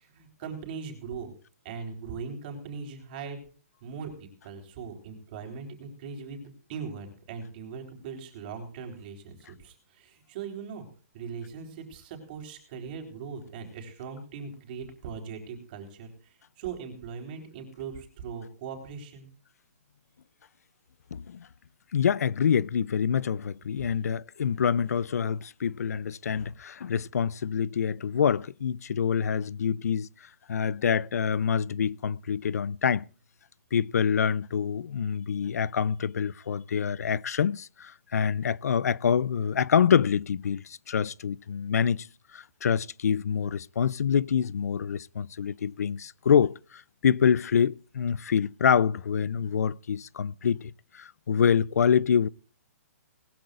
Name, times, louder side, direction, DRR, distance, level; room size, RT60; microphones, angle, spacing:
voice 1, 0.0-1.3 1.6-3.4 3.8-10.9 11.1-19.3, right 6 dB, 35° right, 4.0 m, -40 dB
voice 2, 21.1-21.5 21.9-30.1 30.5-33.0 33.7-42.1 42.3-52.3, left 7 dB, 80° left, 0.5 m, -26 dB
20.0 x 14.5 x 2.5 m
hypercardioid pair, 160°, 8 cm